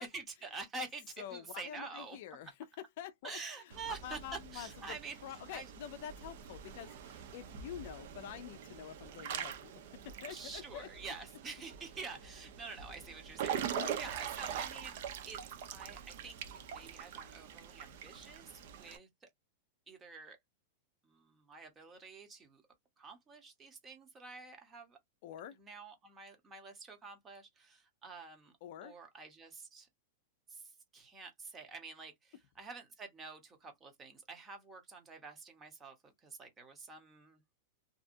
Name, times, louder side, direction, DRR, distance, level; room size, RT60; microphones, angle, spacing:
voice 1, 0.0-2.2 3.2-5.2 5.5-5.6 10.3-15.4 15.7-16.4 16.7-19.3 19.9-20.4 21.0-22.6 23.0-25.0 25.6-28.5 28.8-29.9 30.5-37.4, right 4 dB, 15° right, 0.9 m, -48 dB
voice 2, 1.2-10.9 13.7-14.0 25.2-25.6 28.6-29.0, left 10 dB, 55° left, 0.4 m, -47 dB
Water / Splash splatter / Drip, 3.7-19.0, right 9 dB, 60° right, 0.6 m, -44 dB
2.7 x 2.3 x 2.5 m
supercardioid pair, 150°, 0 cm